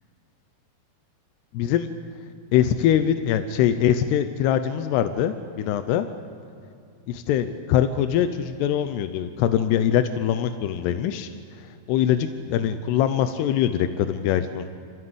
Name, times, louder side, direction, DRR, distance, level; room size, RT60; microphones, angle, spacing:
voice 1, 1.5-1.9 2.5-6.1 7.1-11.3 11.9-14.7, left 10 dB, 85° left, 10 dB, 2.8 m, -23 dB
25.5 x 15.5 x 7.9 m, 2.6 s
omnidirectional pair, 4.7 m